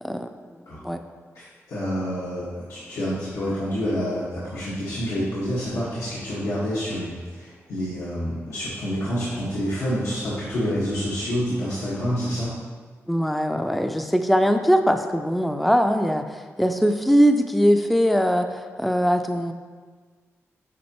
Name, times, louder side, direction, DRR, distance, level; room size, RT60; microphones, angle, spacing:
voice 1, 0.0-0.3 0.8-1.0 13.1-19.5, equal, ahead, 6 dB, 0.4 m, -21 dB
voice 2, 1.3-12.5, equal, 85° left, -10 dB, 1.6 m, -28 dB
9.3 x 5.0 x 3.0 m, 1.5 s
wide cardioid pair, 105°, 5 cm